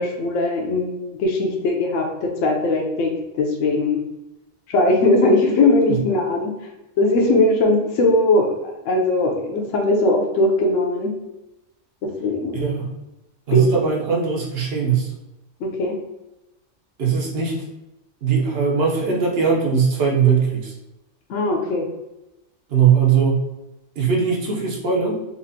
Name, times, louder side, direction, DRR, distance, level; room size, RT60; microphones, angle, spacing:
voice 1, 0.0-4.0 4.7-6.5 7.0-11.1 12.2-12.6 13.5-13.7 15.6-16.0 21.3-21.9, left 2 dB, 80° left, 1 dB, 1.0 m, -20 dB
voice 2, 12.5-12.9 13.5-15.1 17.0-17.6 18.2-20.7 22.7-23.4 24.0-25.3, right 6 dB, 55° right, -2 dB, 0.9 m, -20 dB
4.2 x 2.5 x 2.7 m, 0.97 s
omnidirectional pair, 1.3 m